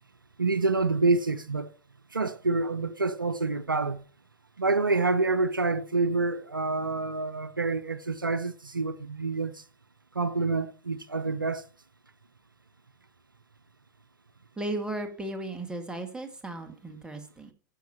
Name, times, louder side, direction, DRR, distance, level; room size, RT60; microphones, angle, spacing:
voice 1, 0.4-1.7 2.1-4.0 4.6-9.6 10.1-11.7, right 3 dB, 85° right, 0.5 m, -27 dB
voice 2, 14.6-17.5, right 1 dB, 10° right, 1.8 m, -35 dB
10.5 x 6.4 x 5.8 m
figure-of-eight pair, 90°, 11 cm